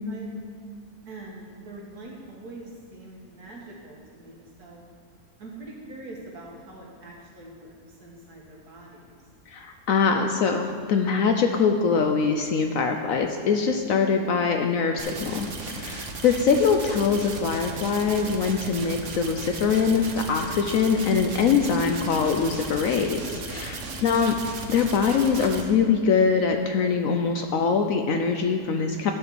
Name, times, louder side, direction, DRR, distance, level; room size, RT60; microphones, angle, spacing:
voice 1, 1.1-4.8 5.4-9.1 15.8-16.1 23.7-23.9, right 2 dB, 80° right, -3 dB, 1.9 m, -44 dB
voice 2, 9.5-24.4 24.7-29.1, left 5 dB, 70° left, 5 dB, 0.9 m, -23 dB
sound 1, 15.0-25.6, right 3 dB, 55° right, 1.2 m, -36 dB
12.0 x 4.5 x 6.9 m, 2.1 s
omnidirectional pair, 1.7 m